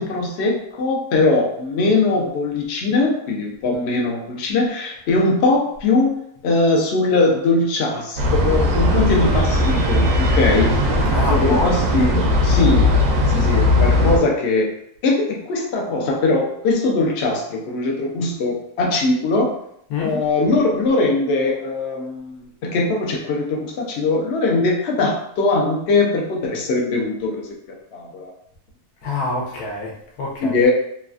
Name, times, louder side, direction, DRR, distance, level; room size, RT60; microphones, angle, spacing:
voice 1, 0.0-6.1 6.4-10.8 11.2-12.9 13.3-14.7 15.0-19.4 20.0-27.4 27.9-28.3 30.4-30.7, left 3 dB, 60° left, 0 dB, 0.7 m, -21 dB
sound 1, 8.2-14.2, left 1 dB, 65° right, 0.9 m, -18 dB
voice 2, 11.1-12.2 19.9-20.2 29.0-30.5, left 3 dB, 80° left, -2 dB, 1.2 m, -26 dB
3.2 x 2.3 x 2.3 m, 0.72 s
omnidirectional pair, 1.6 m